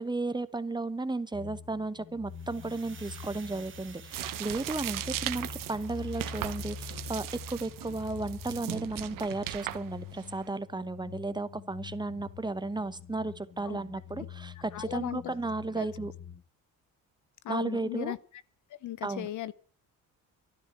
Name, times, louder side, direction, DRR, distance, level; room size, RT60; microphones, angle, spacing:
voice 1, 0.0-16.1 17.5-18.1 19.0-19.3, right 2 dB, 15° right, 1.0 m, -34 dB
sound 1, 1.3-16.4, left 6 dB, 35° left, 0.9 m, -45 dB
sound 2, 2.3-7.3, right 7 dB, 35° right, 1.8 m, -54 dB
sound 3, 4.1-10.5, right 14 dB, 80° right, 1.3 m, -38 dB
voice 2, 14.7-15.3 15.7-15.9 17.4-18.2 18.7-19.5, left 13 dB, 65° left, 0.8 m, -36 dB
13.5 x 11.5 x 8.1 m
cardioid pair, 120°, 33 cm